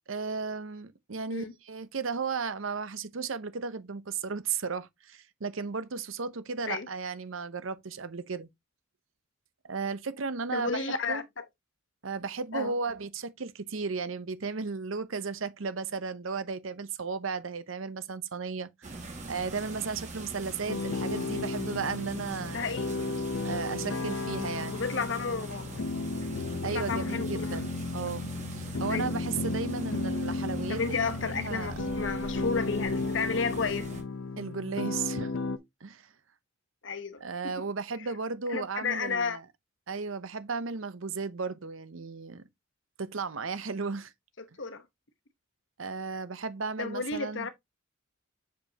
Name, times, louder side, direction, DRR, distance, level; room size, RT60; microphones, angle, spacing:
voice 1, 0.1-8.5 9.6-11.2 12.0-18.9 19.3-22.7 23.4-24.8 26.6-31.0 31.3-31.7 34.4-35.3 35.8-36.1 37.2-39.4 39.9-42.4 43.0-44.1 45.8-47.5, right 4 dB, 80° right, 0.8 m, -35 dB
voice 2, 10.5-11.4 12.5-12.7 22.5-23.1 24.7-25.8 26.6-27.6 28.9-29.2 30.7-33.9 36.8-37.2 38.5-39.4 44.4-44.8 46.8-47.5, left 4 dB, 65° left, 1.0 m, -32 dB
sound 1, 18.8-34.0, right 2 dB, 35° right, 1.8 m, -43 dB
sound 2, 20.7-35.6, left 3 dB, 85° left, 0.7 m, -34 dB
6.8 x 5.2 x 2.8 m
head